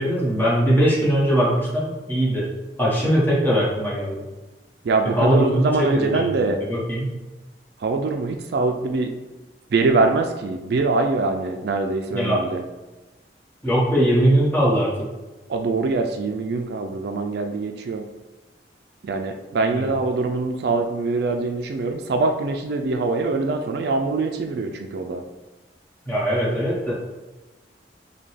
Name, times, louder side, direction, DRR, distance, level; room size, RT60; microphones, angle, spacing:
voice 1, 0.0-2.5 2.8-4.3 5.0-6.2 6.7-7.1 12.1-12.4 13.6-14.9 19.7-19.9 26.0-26.9, equal, 10° left, -7 dB, 1.2 m, -20 dB
voice 2, 4.8-6.6 7.8-9.1 9.7-12.6 15.5-18.1 19.0-25.2, right 3 dB, 65° right, 5 dB, 0.4 m, -23 dB
5.3 x 2.3 x 3.3 m, 1.1 s
head